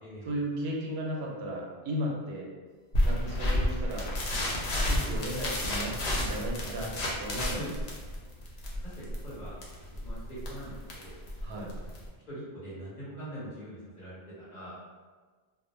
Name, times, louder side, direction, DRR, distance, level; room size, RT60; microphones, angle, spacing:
voice 1, 0.2-2.5 3.0-4.1 4.8-7.8 11.4-11.7, equal, 85° right, -1 dB, 0.8 m, -35 dB
sound 1, 2.9-12.1, left 1 dB, 85° left, 0.9 m, -31 dB
voice 2, 9.0-9.6 10.0-11.1 12.3-14.7, right 1 dB, 45° left, -10 dB, 1.1 m, -43 dB
2.2 x 2.0 x 3.1 m, 1.4 s
omnidirectional pair, 1.0 m